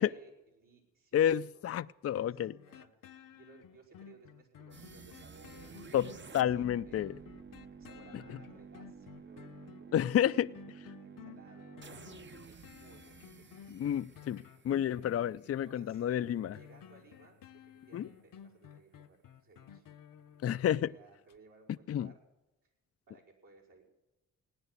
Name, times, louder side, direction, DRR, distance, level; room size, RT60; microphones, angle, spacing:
voice 1, 0.0-1.7 2.0-7.0 7.5-13.9 14.5-14.8 15.4-16.0 16.5-19.9 20.7-22.2 22.6-22.7 23.1-23.9, right 4 dB, 75° right, 5.2 m, -61 dB
voice 2, 1.1-2.6 5.9-7.1 9.9-10.6 13.7-16.6 17.9-18.1 20.4-20.9 21.9-22.1, left 10 dB, 45° left, 0.4 m, -30 dB
sound 1, 2.1-20.8 21.3-21.4, left 9 dB, 75° left, 0.9 m, -54 dB
sound 2, 4.7-15.7, right 5 dB, 35° right, 0.8 m, -52 dB
17.5 x 10.0 x 8.1 m
cardioid pair, 70°, 33 cm